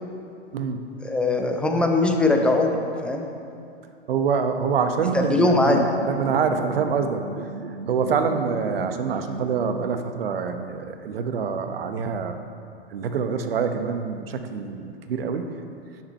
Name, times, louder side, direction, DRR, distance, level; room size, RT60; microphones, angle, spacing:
voice 1, 0.5-0.8 4.1-7.2 7.7-12.4 12.9-15.5, right 6 dB, 60° right, 7 dB, 0.9 m, -26 dB
voice 2, 1.0-3.3 5.1-5.8, left 2 dB, 5° left, 3 dB, 0.7 m, -21 dB
sound 1, 4.9-10.1, right 4 dB, 80° right, 0.6 m, -36 dB
8.6 x 7.5 x 5.4 m, 2.5 s
figure-of-eight pair, 105°, 32 cm